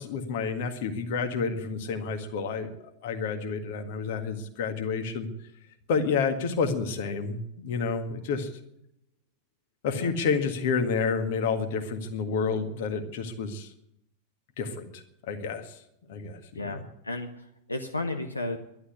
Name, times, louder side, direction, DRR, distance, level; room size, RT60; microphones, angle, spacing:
voice 1, 0.0-2.7 3.0-5.3 5.9-8.5 9.8-13.7 14.6-15.8 16.1-16.8, left 5 dB, 50° left, 6 dB, 1.8 m, -29 dB
voice 2, 16.5-18.6, left 2 dB, 80° left, 5 dB, 1.0 m, -34 dB
11.5 x 11.0 x 9.7 m, 0.80 s
figure-of-eight pair, 90°, 0 cm